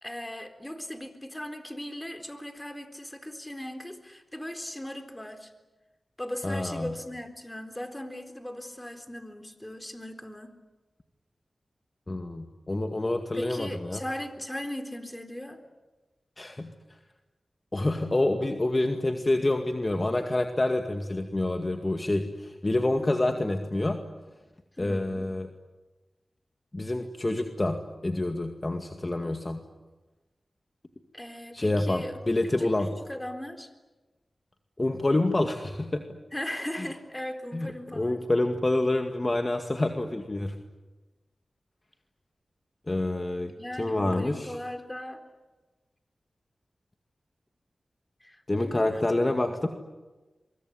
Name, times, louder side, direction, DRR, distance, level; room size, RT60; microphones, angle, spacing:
voice 1, 0.0-5.5 6.2-10.6 13.3-15.6 24.8-25.3 31.1-32.2 33.1-33.7 36.3-38.2 43.6-45.2 48.2-49.7, left 1 dB, 15° left, 7 dB, 3.9 m, -38 dB
voice 2, 6.4-6.9 12.1-14.0 16.4-16.7 17.7-24.0 24.8-25.5 26.7-27.8 28.0-29.6 31.5-32.9 34.8-36.0 37.5-40.5 42.9-43.5 43.8-44.5 48.5-49.7, left 2 dB, 35° left, 4 dB, 2.1 m, -27 dB
24.0 x 23.5 x 9.9 m, 1.2 s
cardioid pair, 50°, 0 cm